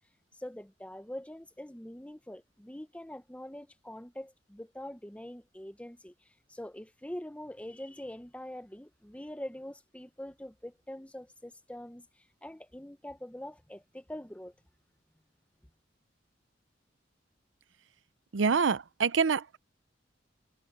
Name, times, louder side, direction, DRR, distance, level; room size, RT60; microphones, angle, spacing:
voice 1, 0.4-14.5, left 1 dB, 5° left, 1.0 m, -44 dB
voice 2, 18.3-19.6, right 5 dB, 80° right, 0.6 m, -26 dB
head